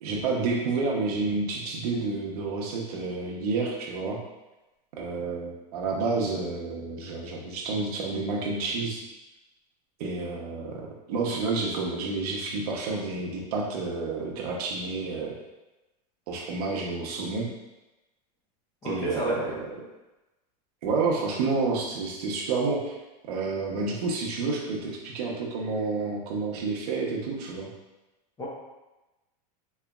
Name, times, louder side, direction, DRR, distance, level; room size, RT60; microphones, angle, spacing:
voice 1, 0.0-4.2 5.0-9.0 10.0-15.3 16.3-17.5 18.8-19.7 20.8-23.0 23.3-27.7, right 3 dB, 70° right, -2 dB, 0.9 m, -29 dB
voice 2, 18.8-19.3 28.4-28.5, right 1 dB, 20° left, -6 dB, 1.0 m, -29 dB
3.9 x 3.2 x 2.3 m, 1.1 s
supercardioid pair, 150°, 21 cm